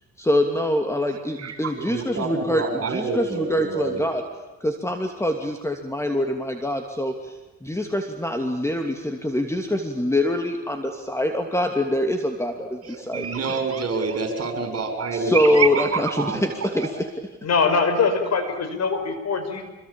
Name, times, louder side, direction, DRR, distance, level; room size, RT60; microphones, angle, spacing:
voice 1, 0.2-4.2 4.6-13.6 15.1-17.1, left 1 dB, 10° left, 5 dB, 2.8 m, -24 dB
voice 2, 1.4-4.0 12.8-16.9, right 4 dB, 50° right, 6 dB, 7.1 m, -27 dB
voice 3, 17.4-19.6, left 4 dB, 60° left, 8 dB, 5.7 m, -22 dB
26.5 x 23.0 x 9.0 m, 1.1 s
cardioid pair, 90°, 30 cm